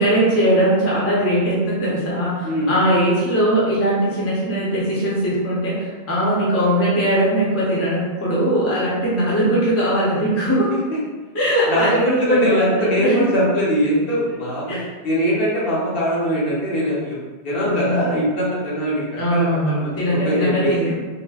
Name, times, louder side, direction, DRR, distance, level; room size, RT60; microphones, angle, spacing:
voice 1, 0.0-10.7 11.3-13.3 14.7-14.9 17.6-18.1 19.2-20.9, right 1 dB, 15° left, -7 dB, 0.6 m, -20 dB
voice 2, 11.7-14.8 15.0-17.2 17.4-20.9, equal, 65° left, -7 dB, 1.0 m, -21 dB
3.7 x 2.1 x 2.4 m, 1.3 s
omnidirectional pair, 1.1 m